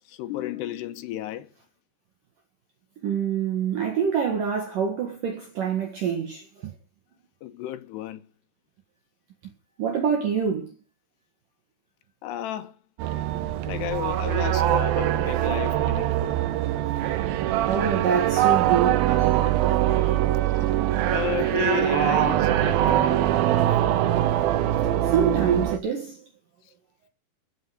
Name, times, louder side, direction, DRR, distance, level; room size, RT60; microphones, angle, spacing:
voice 1, 0.1-1.5 7.4-8.2 12.2-12.8 13.7-16.4 19.8-20.3 21.1-23.3, left 12 dB, 75° left, 2.8 m, -33 dB
voice 2, 3.0-6.7 9.4-9.5 9.8-10.7 17.7-19.3 25.1-26.2, right 7 dB, 55° right, 2.8 m, -26 dB
sound 1, 13.0-25.8, right 12 dB, 75° right, 2.3 m, -23 dB
16.0 x 6.7 x 6.4 m
omnidirectional pair, 5.4 m